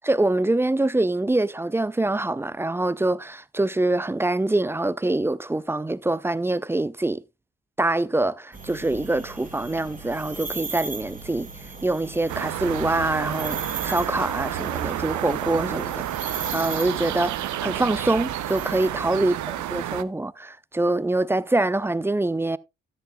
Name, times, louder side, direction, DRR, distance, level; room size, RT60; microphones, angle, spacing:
voice 1, 0.0-7.2 7.8-11.5 11.8-19.3 19.7-22.6, right 2 dB, 5° right, 0.4 m, -25 dB
sound 1, 8.5-18.9, right 4 dB, 20° right, 1.9 m, -37 dB
sound 2, 12.3-20.0, right 12 dB, 55° right, 0.8 m, -30 dB
13.0 x 9.2 x 2.3 m
hypercardioid pair, 45°, 36 cm